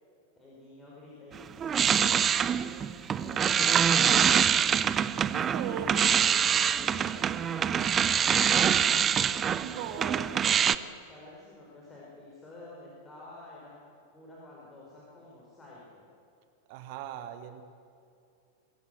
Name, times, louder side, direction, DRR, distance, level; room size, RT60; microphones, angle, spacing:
voice 1, 0.4-1.8 2.4-5.2 5.6-16.1, left 2 dB, 15° left, -5 dB, 4.9 m, -49 dB
sound 1, 1.3-10.8, right 8 dB, 25° right, 0.6 m, -25 dB
voice 2, 5.2-5.9 9.5-10.4 16.7-17.6, right 9 dB, 45° right, 10 dB, 1.3 m, -39 dB
24.0 x 14.0 x 7.8 m, 2.6 s
figure-of-eight pair, 90°, 0 cm